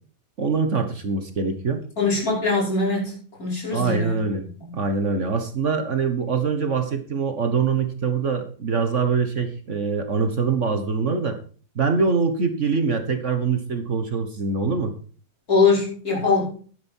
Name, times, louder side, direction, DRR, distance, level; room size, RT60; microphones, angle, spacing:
voice 1, 0.4-1.8 3.7-4.4 4.7-11.4 11.7-14.9, right 5 dB, 50° right, 7 dB, 1.6 m, -24 dB
voice 2, 2.0-4.8 15.5-16.5, left 4 dB, 60° left, -3 dB, 5.9 m, -23 dB
12.0 x 9.5 x 4.5 m, 0.42 s
omnidirectional pair, 1.7 m